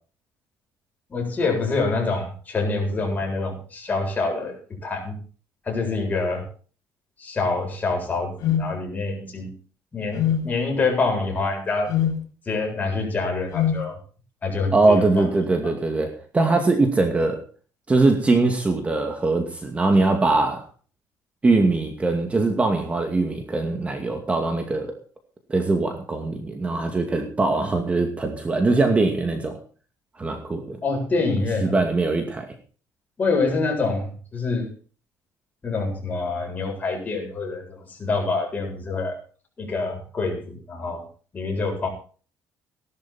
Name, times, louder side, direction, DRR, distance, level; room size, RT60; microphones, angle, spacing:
voice 1, 1.1-5.2 5.6-6.5 7.2-9.5 9.9-11.9 12.5-14.0 14.4-15.3 30.8-31.8 33.2-34.7 35.6-39.2 39.6-41.0 41.3-41.9, left 3 dB, 25° left, 1 dB, 7.7 m, -26 dB
sound 1, 8.4-8.7 10.1-10.5 11.9-12.2 13.5-13.8, left 9 dB, 65° left, 3.1 m, -22 dB
voice 2, 14.7-17.4 17.9-20.6 21.4-24.9 25.5-29.6 30.2-30.8 31.6-32.5, right 3 dB, 20° right, 4 dB, 2.4 m, -21 dB
18.0 x 12.0 x 4.4 m, 0.40 s
cardioid pair, 130°, 6 cm